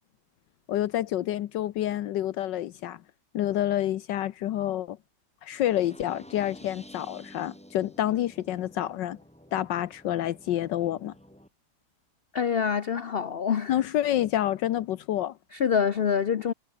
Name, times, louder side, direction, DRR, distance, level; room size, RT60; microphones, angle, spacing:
voice 1, 0.7-3.0 3.3-5.0 5.4-9.2 9.5-11.1 13.7-15.3, left 12 dB, 80° left, 1.5 m, -28 dB
sound 1, 5.5-11.5, equal, 5° left, 4.9 m, -51 dB
voice 2, 12.3-13.8 15.5-16.5, left 7 dB, 55° left, 0.6 m, -26 dB
omnidirectional pair, 1.9 m